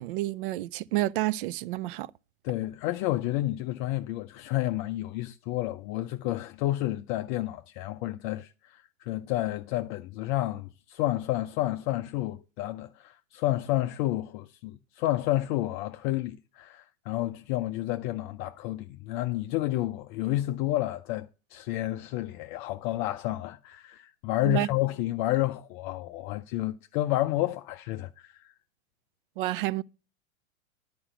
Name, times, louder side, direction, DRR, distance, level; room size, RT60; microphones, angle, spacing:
voice 1, 0.0-2.1 24.4-24.7 29.4-29.8, right 17 dB, 40° right, 0.4 m, -29 dB
voice 2, 2.4-28.5, left 15 dB, 35° left, 0.5 m, -30 dB
11.0 x 5.1 x 7.9 m
figure-of-eight pair, 100°, 41 cm